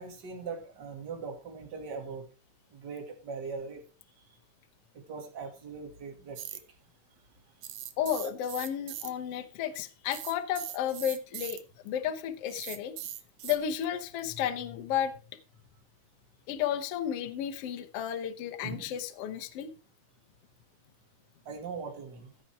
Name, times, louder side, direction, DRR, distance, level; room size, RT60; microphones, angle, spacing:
voice 1, 0.0-2.2 2.7-3.8 5.1-6.6 18.6-18.9 21.5-22.3, right 4 dB, 35° right, 4 dB, 2.4 m, -40 dB
sound 1, 6.4-6.6 7.6-9.1 10.1-11.6 12.5-13.6, right 12 dB, 70° right, 2.3 m, -40 dB
voice 2, 8.0-12.9 13.4-15.1 16.5-19.7, left 9 dB, 75° left, 7 dB, 1.4 m, -33 dB
15.5 x 5.9 x 4.6 m, 0.33 s
omnidirectional pair, 4.3 m